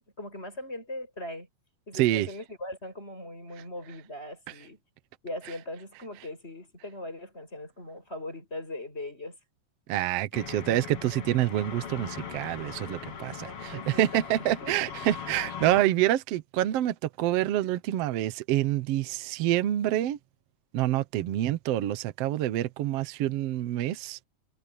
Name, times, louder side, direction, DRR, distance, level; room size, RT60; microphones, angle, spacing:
voice 1, 0.2-1.5 1.9-4.8 5.2-9.4 13.3-15.1, left 1 dB, 20° left, 7.7 m, -40 dB
voice 2, 2.0-2.3 9.9-20.2 20.7-24.2, right 13 dB, 65° right, 1.6 m, -27 dB
sound 1, 10.3-15.8, left 7 dB, 50° left, 2.7 m, -40 dB
omnidirectional pair, 3.7 m